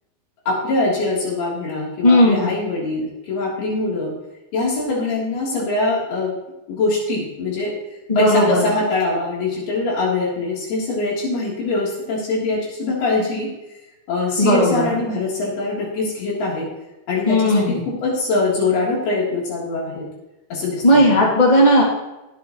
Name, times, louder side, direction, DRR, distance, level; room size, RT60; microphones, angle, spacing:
voice 1, 0.5-4.1 4.5-6.3 6.7-7.7 8.2-13.5 14.1-16.7 17.1-20.1 20.5-21.0, left 2 dB, 80° left, -4 dB, 5.4 m, -23 dB
voice 2, 2.0-2.5 8.1-8.6 14.4-14.9 17.3-17.8 20.8-21.8, left 1 dB, 15° left, -4 dB, 2.3 m, -15 dB
19.0 x 8.4 x 3.1 m, 1.0 s
omnidirectional pair, 4.4 m